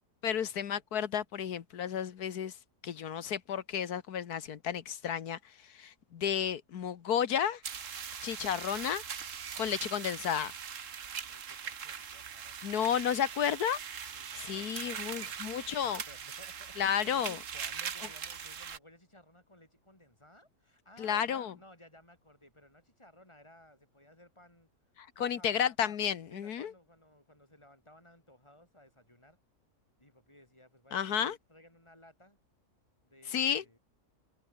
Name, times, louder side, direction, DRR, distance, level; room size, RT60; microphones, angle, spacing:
voice 1, 0.2-2.5 2.8-5.4 5.7-7.6 8.2-9.0 9.5-10.5 12.6-13.8 14.4-16.0 16.8-17.4 21.0-21.5 25.0-26.7 30.9-31.4 33.3-33.6, left 8 dB, 85° left, 1.7 m, -32 dB
sound 1, 7.6-18.8, right 7 dB, 55° right, 1.6 m, -41 dB
voice 2, 11.3-13.3 14.0-24.7 25.2-25.6 26.3-29.4 30.0-32.4 33.0-33.8, left 1 dB, 20° left, 6.3 m, -59 dB
omnidirectional pair, 1.6 m